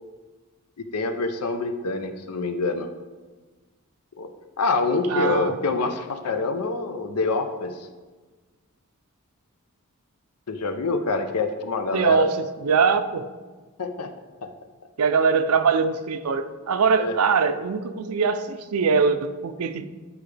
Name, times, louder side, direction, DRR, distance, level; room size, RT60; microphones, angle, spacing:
voice 1, 0.9-2.9 4.2-4.3 4.6-7.9 10.5-12.3 13.8-14.1 14.4-14.5 17.0-17.1, left 3 dB, 90° left, 7 dB, 0.7 m, -26 dB
voice 2, 5.1-5.6 11.9-13.2 15.0-19.9, right 5 dB, 75° right, 10 dB, 0.5 m, -22 dB
10.0 x 4.9 x 3.4 m, 1.3 s
head